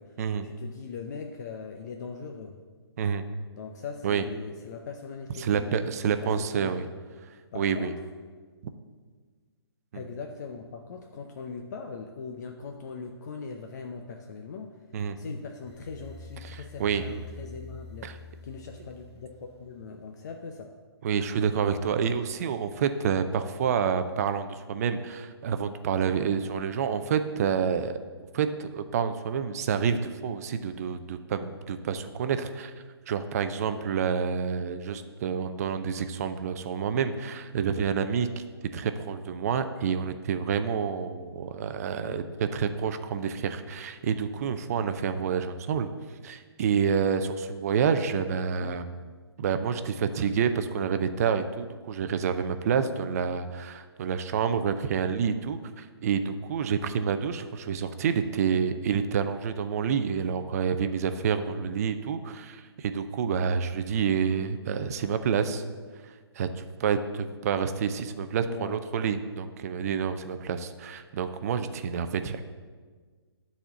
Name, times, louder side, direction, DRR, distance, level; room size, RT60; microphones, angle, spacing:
voice 1, 0.4-2.6 3.6-5.7 6.0-6.8 7.5-8.0 9.9-14.8 15.2-20.8 41.9-42.3 48.6-48.8 68.5-68.8, left 5 dB, 40° left, 4 dB, 0.7 m, -40 dB
voice 2, 5.4-6.9 7.5-7.9 8.6-8.7 14.9-15.2 16.4-17.0 18.0-18.2 21.0-27.9 28.3-32.7 33.1-38.3 38.7-45.9 46.2-48.9 49.4-65.6 66.3-72.4, right 7 dB, 35° right, 10 dB, 0.6 m, -28 dB
sound 1, 15.7-19.7, left 2 dB, 70° left, 2.0 m, -46 dB
10.0 x 4.3 x 6.9 m, 1.5 s
figure-of-eight pair, 140°, 14 cm